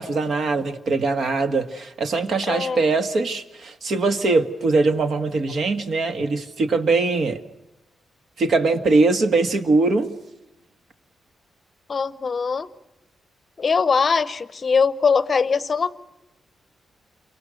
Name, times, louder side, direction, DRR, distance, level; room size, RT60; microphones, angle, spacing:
voice 1, 0.0-7.4 8.4-10.1, right 3 dB, 55° right, 8 dB, 1.7 m, -21 dB
voice 2, 2.5-2.8 11.9-12.7 13.6-15.9, left 5 dB, 35° left, 15 dB, 0.8 m, -21 dB
28.5 x 24.0 x 6.4 m, 0.94 s
wide cardioid pair, 150°, 0 cm